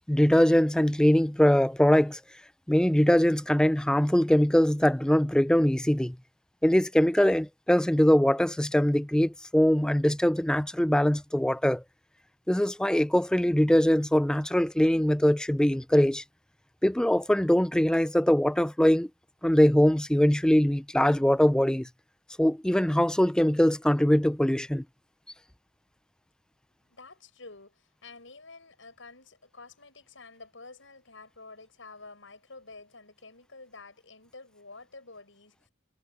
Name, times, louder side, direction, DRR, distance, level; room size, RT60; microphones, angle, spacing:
voice 1, 0.1-2.2 2.7-6.2 6.6-11.8 12.5-16.2 16.8-19.1 19.4-21.9 22.4-24.8, equal, 5° left, 0.4 m, -22 dB
voice 2, 26.8-35.7, left 3 dB, 80° left, 7.2 m, -49 dB
head